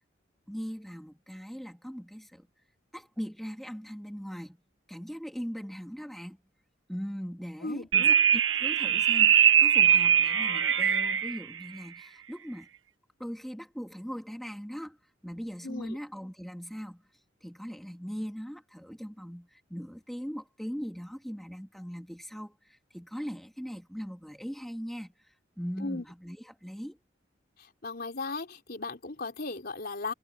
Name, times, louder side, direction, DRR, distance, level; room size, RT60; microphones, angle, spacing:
voice 1, 0.5-2.5 2.9-4.6 4.9-6.4 6.9-12.7 13.2-15.0 15.2-17.0 17.4-27.0, equal, ahead, 2.9 m, -40 dB
voice 2, 7.6-8.1 15.6-16.0 25.8-26.0 27.8-30.1, left 3 dB, 55° left, 3.9 m, -36 dB
sound 1, 7.9-11.4, right 8 dB, 75° right, 1.5 m, -22 dB
head